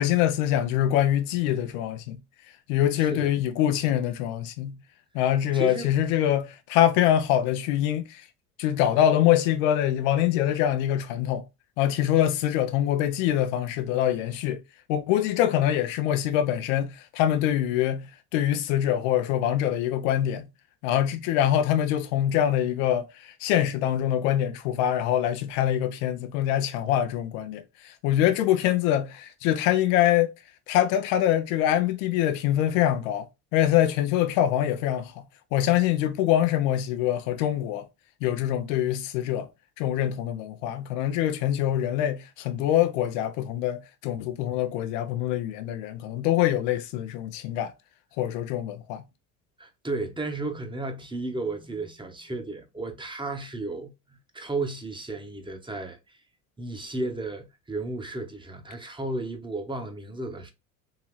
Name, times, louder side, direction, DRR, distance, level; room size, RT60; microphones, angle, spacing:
voice 1, 0.0-2.2 2.7-4.8 5.1-8.2 8.6-11.4 11.8-14.6 14.9-20.5 20.8-30.3 30.7-35.2 35.5-37.9 38.2-39.5 39.8-47.7 48.2-49.0, left 11 dB, 75° left, 0.6 m, -24 dB
voice 2, 3.0-3.3 5.5-5.9 49.6-56.2 56.6-60.5, right 2 dB, 10° right, 1.0 m, -33 dB
3.7 x 2.9 x 3.1 m
hypercardioid pair, 70°, 39 cm